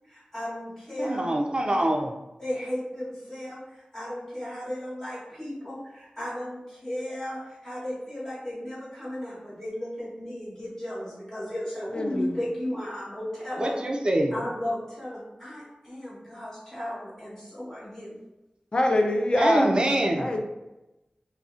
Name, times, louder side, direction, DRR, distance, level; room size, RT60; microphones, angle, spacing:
voice 1, 0.1-1.2 2.4-13.8 14.3-18.2, left 1 dB, 20° left, -8 dB, 1.1 m, -35 dB
voice 2, 1.0-2.1 13.6-14.4 19.4-20.3, right 1 dB, 35° right, 2 dB, 0.3 m, -24 dB
voice 3, 11.9-12.4 18.7-19.7 20.2-20.4, left 1 dB, 35° left, 2 dB, 0.3 m, -24 dB
2.6 x 2.0 x 2.4 m, 0.98 s
wide cardioid pair, 75°, 3 cm